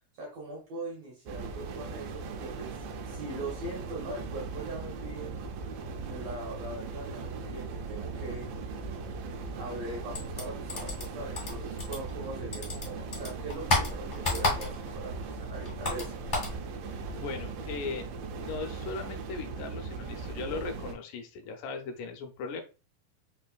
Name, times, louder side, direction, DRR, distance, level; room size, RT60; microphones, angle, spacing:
voice 1, 0.2-2.8 3.0-5.3 6.0-8.5 9.5-16.1, right 2 dB, 70° right, -2 dB, 1.6 m, -41 dB
sound 1, 1.3-21.0, right 4 dB, 90° right, 2.3 m, -39 dB
sound 2, 10.1-12.3 12.5-15.0 15.3-16.6, left 2 dB, 45° left, 0.7 m, -31 dB
voice 2, 17.1-18.1 18.4-22.6, left 4 dB, 80° left, 5 dB, 2.1 m, -38 dB
5.5 x 2.5 x 2.2 m, 0.32 s
omnidirectional pair, 3.9 m